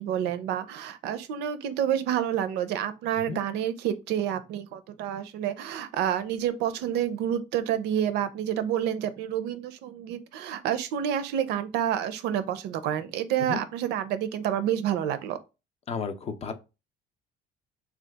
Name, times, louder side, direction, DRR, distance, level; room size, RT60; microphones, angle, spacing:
voice 1, 0.0-15.4, right 10 dB, 85° right, 0.4 m, -29 dB
voice 2, 15.9-16.5, left 5 dB, 40° left, 0.5 m, -32 dB
2.8 x 2.3 x 3.3 m
cardioid pair, 110°, 17 cm